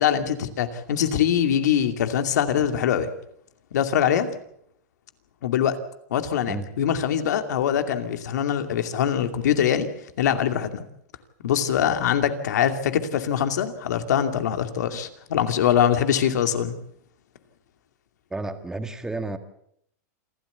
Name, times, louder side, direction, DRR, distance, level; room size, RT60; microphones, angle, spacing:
voice 1, 0.0-3.1 3.7-4.3 5.4-5.8 6.1-9.9 10.2-10.8 11.4-16.7, left 9 dB, 80° left, 8 dB, 2.6 m, -23 dB
voice 2, 18.3-19.4, right 2 dB, 5° right, 8 dB, 2.0 m, -31 dB
27.5 x 13.0 x 8.3 m, 0.72 s
supercardioid pair, 140°, 9 cm